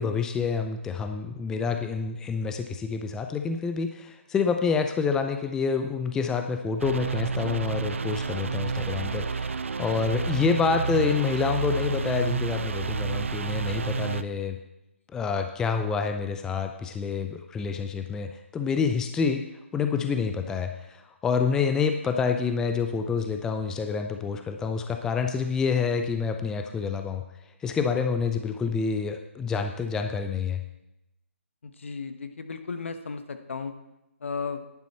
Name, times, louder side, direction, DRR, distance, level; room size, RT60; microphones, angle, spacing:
voice 1, 0.0-14.6 15.1-19.4 19.7-27.2 27.6-30.6, left 5 dB, 10° left, 6 dB, 0.5 m, -27 dB
sound 1, 6.8-14.2, right 4 dB, 70° right, 0.6 m, -30 dB
voice 2, 31.8-33.7 34.2-34.6, left 5 dB, 65° left, 8 dB, 1.2 m, -34 dB
10.5 x 10.5 x 4.2 m, 0.93 s
figure-of-eight pair, 145°, 7 cm